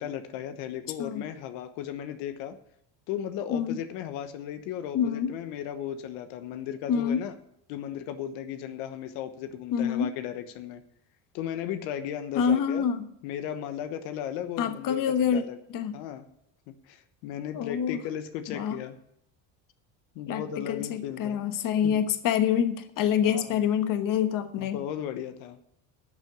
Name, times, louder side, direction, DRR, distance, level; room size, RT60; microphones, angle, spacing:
voice 1, 0.0-2.6 3.1-7.3 7.7-10.8 11.3-12.8 13.2-15.6 15.9-16.3 16.9-19.0 20.1-22.0 23.2-23.7 24.6-25.6, left 10 dB, 85° left, 9 dB, 1.2 m, -36 dB
voice 2, 4.9-5.3 6.9-7.2 9.7-10.1 12.3-13.1 14.6-15.4 15.7-16.0 17.5-18.0 18.5-18.8 20.3-24.8, left 8 dB, 50° left, 9 dB, 1.3 m, -26 dB
12.0 x 6.7 x 8.7 m, 0.75 s
cardioid pair, 120°, 41 cm